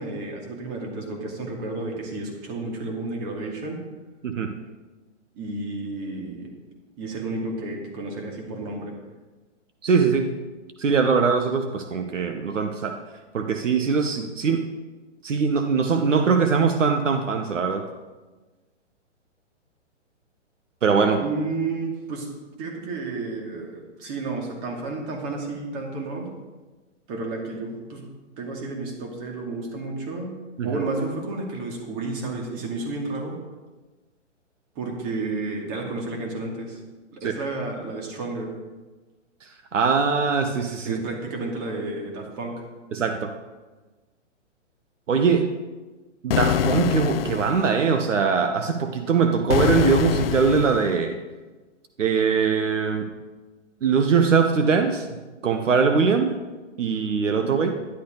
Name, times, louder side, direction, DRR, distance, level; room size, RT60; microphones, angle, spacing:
voice 1, 0.0-3.8 5.4-6.5 7.0-9.0 21.2-22.3 22.6-26.3 27.1-28.0 28.4-30.3 30.6-33.4 34.8-36.8 37.1-38.5 40.8-42.6 57.3-57.7, right 3 dB, 30° right, 1 dB, 2.5 m, -31 dB
voice 2, 9.8-10.3 10.8-13.0 13.3-14.6 15.2-17.9 20.8-21.2 30.6-30.7 37.2-37.3 39.4-41.0 42.9-43.3 45.1-45.5 46.2-51.2 52.0-53.1 53.8-55.1 55.4-56.4 56.8-57.8, right 5 dB, 80° right, 6 dB, 1.1 m, -22 dB
sound 1, 46.3-47.7 49.5-50.9, left 11 dB, 50° left, 0.5 m, -24 dB
11.5 x 11.5 x 3.9 m, 1.2 s
hypercardioid pair, 140°, 37 cm